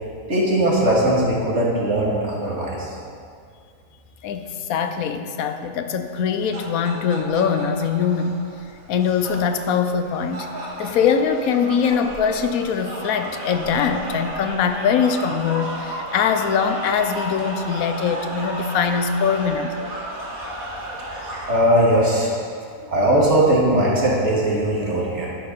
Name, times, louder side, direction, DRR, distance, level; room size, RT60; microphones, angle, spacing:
voice 1, 0.3-2.9 21.5-22.4 22.9-25.3, right 1 dB, 55° right, -4 dB, 2.3 m, -19 dB
voice 2, 4.2-8.4 8.9-10.5 10.8-19.7 22.8-22.9, left 6 dB, 85° left, 8 dB, 1.1 m, -22 dB
sound 1, 6.1-21.6, right 1 dB, 85° right, 2.1 m, -34 dB
11.0 x 6.9 x 5.2 m, 2.3 s
omnidirectional pair, 1.5 m